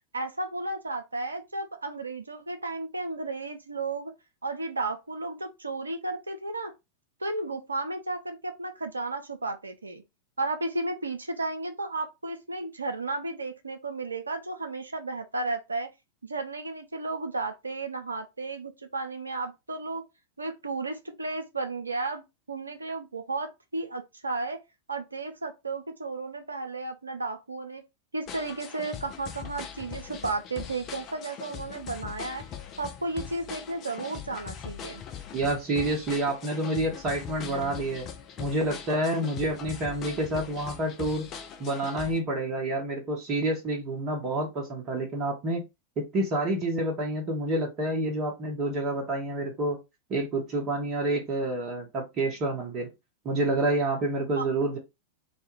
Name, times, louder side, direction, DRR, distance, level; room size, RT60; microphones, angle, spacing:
voice 1, 0.1-4.1 4.4-6.7 7.2-10.0 10.4-15.9 16.2-20.0 20.4-24.6 24.9-27.8 28.1-32.5 32.8-35.0 54.4-54.5, right 3 dB, 80° right, 0.5 m, -33 dB
sound 1, 28.3-42.2, left 8 dB, 35° left, 0.4 m, -41 dB
voice 2, 35.3-38.1 38.4-41.3 41.6-45.6 46.0-49.8 50.1-52.9 53.2-54.8, right 1 dB, 30° right, 0.8 m, -28 dB
2.4 x 2.2 x 3.0 m
figure-of-eight pair, 90°, 0 cm